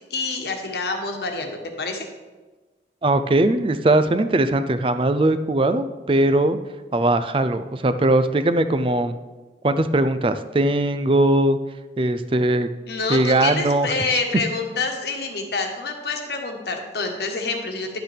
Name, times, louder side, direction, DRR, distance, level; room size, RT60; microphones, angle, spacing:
voice 1, 0.1-2.1 12.9-18.0, left 3 dB, 70° left, 3 dB, 1.3 m, -27 dB
voice 2, 3.0-6.6 6.9-9.2 9.6-11.6 12.0-12.7 13.1-14.2, right 1 dB, 30° right, 11 dB, 0.4 m, -20 dB
11.0 x 7.9 x 3.5 m, 1.3 s
head